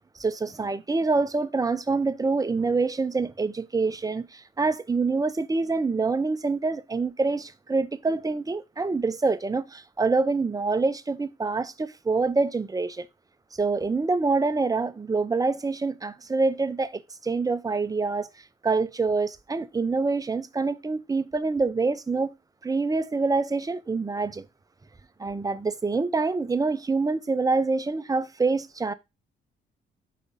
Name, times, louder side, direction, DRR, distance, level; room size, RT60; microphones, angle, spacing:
voice 1, 0.2-13.1 13.5-18.3 18.6-22.3 22.6-24.5 25.2-28.9, right 3 dB, 20° right, 0.7 m, -26 dB
5.1 x 3.9 x 5.4 m
cardioid pair, 90°, 20 cm